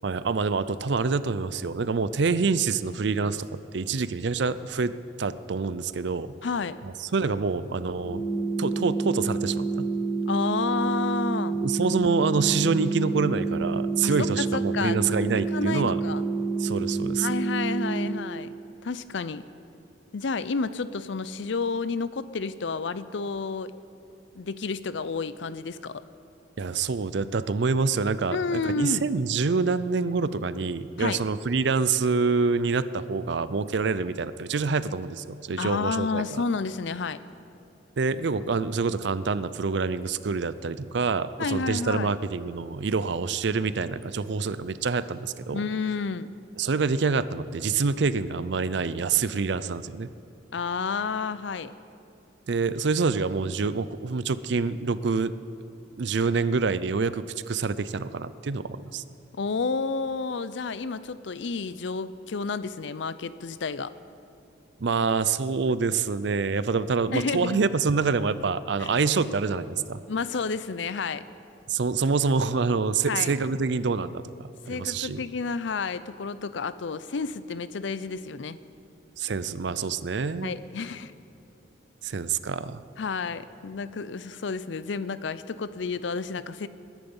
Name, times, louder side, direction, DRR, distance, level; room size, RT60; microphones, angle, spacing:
voice 1, 0.0-3.5 3.7-4.9 5.2-6.3 7.0-8.2 8.6-9.7 11.5-16.0 16.6-17.3 26.6-36.4 38.0-45.6 46.6-50.1 52.5-55.3 56.0-59.0 64.8-70.0 71.7-75.2 79.2-80.5 82.0-82.8, right 4 dB, 60° right, 15 dB, 0.5 m, -26 dB
voice 2, 6.4-6.8 10.3-11.6 14.0-15.0 15.4-16.2 17.2-18.5 18.8-19.4 20.1-23.7 24.4-26.0 28.3-29.1 31.0-31.2 35.6-37.2 41.4-42.1 45.5-46.3 50.5-51.7 59.4-63.9 67.1-67.6 68.8-68.9 70.1-71.2 73.1-73.4 74.7-78.6 80.4-81.1 83.0-86.7, left 4 dB, 65° left, 15 dB, 0.5 m, -30 dB
sound 1, 8.0-18.1, right 3 dB, 85° left, 4.4 m, -28 dB
21.0 x 10.5 x 5.5 m, 2.8 s
head